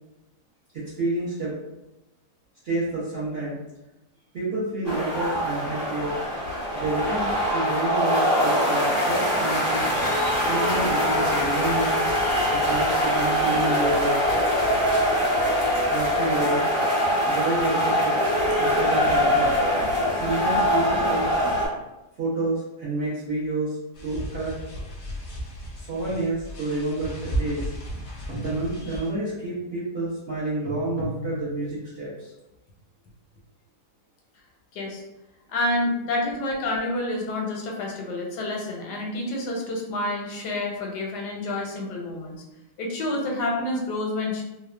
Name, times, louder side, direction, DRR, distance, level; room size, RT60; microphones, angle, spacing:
voice 1, 0.7-1.6 2.6-3.6 4.3-6.2 6.7-9.9 10.4-12.0 12.5-14.2 15.3-16.7 17.3-18.2 18.6-21.4 22.2-23.8 24.0-24.5 25.8-27.7 28.3-32.3, right 2 dB, 60° right, -9 dB, 0.6 m, -29 dB
sound 1, 4.8-21.7, equal, 40° right, 1.2 m, -23 dB
sound 2, 23.9-29.1, right 1 dB, 60° left, 0.7 m, -34 dB
sound 3, 26.4-26.7 28.3-29.3 30.7-32.0, equal, 90° right, 1.4 m, -36 dB
voice 2, 34.7-35.0 35.5-42.4 42.8-44.4, left 2 dB, 85° left, -1 dB, 1.2 m, -28 dB
3.0 x 2.0 x 2.2 m, 0.98 s
omnidirectional pair, 1.8 m